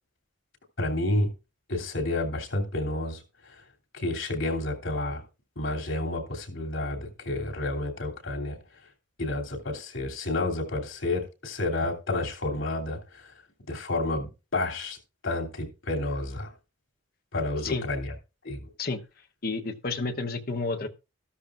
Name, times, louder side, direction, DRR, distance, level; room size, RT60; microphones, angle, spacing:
voice 1, 0.8-1.3 1.7-3.2 3.9-5.2 5.6-8.6 9.2-13.3 13.7-15.0 15.2-16.5 17.3-18.1 18.4-18.7, left 2 dB, 75° left, 2.9 m, -30 dB
voice 2, 19.4-20.9, left 3 dB, 45° left, 0.9 m, -30 dB
13.5 x 13.0 x 2.5 m
head